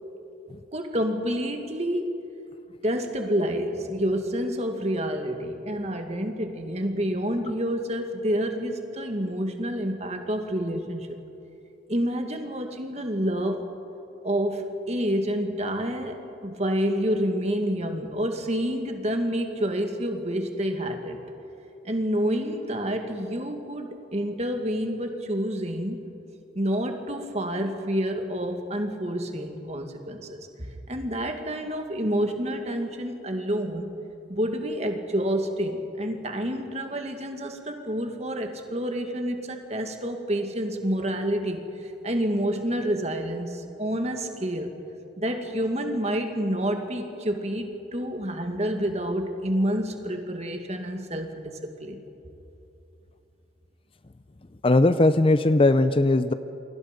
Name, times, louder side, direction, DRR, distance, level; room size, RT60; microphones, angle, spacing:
voice 1, 0.7-2.2 2.8-11.2 11.9-13.6 14.2-21.2 21.8-26.0 26.6-33.9 34.3-44.7 45.2-52.0, equal, 35° right, 4 dB, 1.9 m, -28 dB
voice 2, 54.6-56.3, left 2 dB, 30° left, 12 dB, 0.5 m, -19 dB
29.0 x 23.0 x 5.2 m, 2.8 s
head